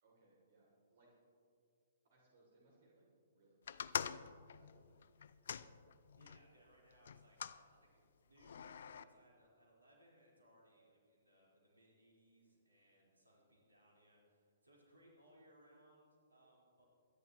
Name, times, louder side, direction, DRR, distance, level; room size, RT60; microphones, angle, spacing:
voice 1, 0.0-1.1 2.1-3.1 3.3-5.1 5.5-5.8, right 2 dB, 50° right, -3 dB, 3.0 m, -71 dB
sound 1, 3.7-6.4 7.1-7.6 8.4-9.0, left 8 dB, 60° left, 0.4 m, -45 dB
voice 2, 6.2-16.8, right 1 dB, 80° right, -3 dB, 4.1 m, -68 dB
24.0 x 11.0 x 3.0 m, 2.3 s
figure-of-eight pair, 120°, 0 cm